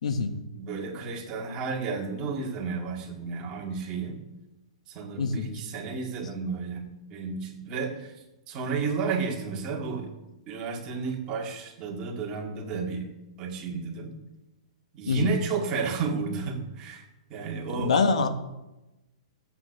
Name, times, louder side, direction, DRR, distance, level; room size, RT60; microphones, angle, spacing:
voice 1, 0.0-0.3 5.2-5.5 15.1-15.4 17.8-18.3, left 4 dB, 75° left, 1.5 m, -25 dB
voice 2, 0.6-4.2 4.9-6.8 7.1-8.1 8.5-10.1 10.5-13.0 13.4-14.1 14.9-17.0 17.3-17.9, right 5 dB, 20° right, 2.0 m, -32 dB
13.5 x 8.5 x 6.6 m
hypercardioid pair, 175°, 4 cm